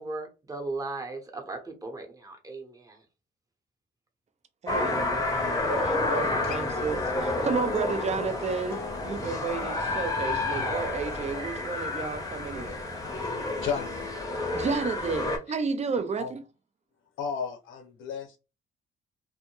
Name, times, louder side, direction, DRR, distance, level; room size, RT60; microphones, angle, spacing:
voice 1, 0.0-3.0, right 3 dB, 15° right, 0.8 m, -37 dB
voice 2, 4.6-12.8 14.5-16.4, right 5 dB, 35° right, 0.5 m, -32 dB
sound 1, 4.7-15.4, left 2 dB, 15° left, 0.7 m, -30 dB
Acoustic guitar, 6.2-11.4 13.0-14.2, left 9 dB, 55° left, 0.4 m, -46 dB
voice 3, 13.6-14.1 16.2-16.3 17.2-18.4, left 6 dB, 80° left, 0.8 m, -33 dB
2.1 x 2.1 x 2.9 m
cardioid pair, 90°, 20 cm